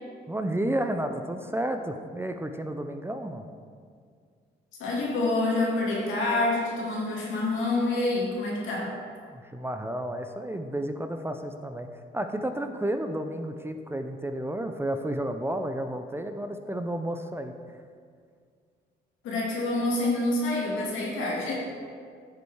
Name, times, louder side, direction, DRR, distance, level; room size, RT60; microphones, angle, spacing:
voice 1, 0.3-3.5 9.3-11.9 12.1-17.5, right 1 dB, 10° right, 7 dB, 0.5 m, -31 dB
voice 2, 4.7-8.9 19.2-21.5, left 2 dB, 85° left, -4 dB, 2.4 m, -27 dB
10.0 x 5.4 x 4.8 m, 2.1 s
cardioid pair, 90°, 20 cm